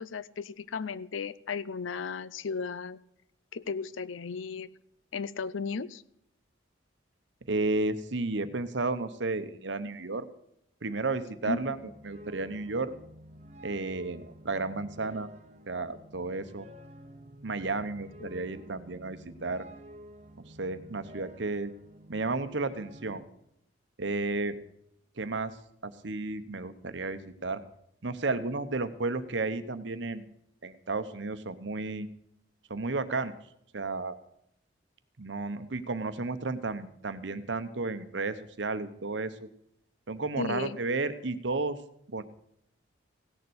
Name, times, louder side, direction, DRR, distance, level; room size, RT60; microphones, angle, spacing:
voice 1, 0.0-3.0 3.5-4.7 5.1-6.0 11.4-11.8 18.2-18.3 40.4-40.8, left 5 dB, 90° left, 17 dB, 0.5 m, -35 dB
voice 2, 7.5-10.3 10.8-11.8 12.0-12.9 13.6-15.3 15.7-16.7 17.4-19.6 20.5-21.7 22.1-23.2 24.0-24.6 25.2-25.6 25.8-27.6 28.0-30.3 30.6-32.1 32.7-33.3 33.7-34.2 35.2-39.5 40.1-41.8 42.1-42.2, right 3 dB, 70° right, 12 dB, 0.9 m, -32 dB
sound 1, 11.5-23.2, equal, 35° right, 0.9 m, -50 dB
16.5 x 6.9 x 7.9 m, 0.75 s
head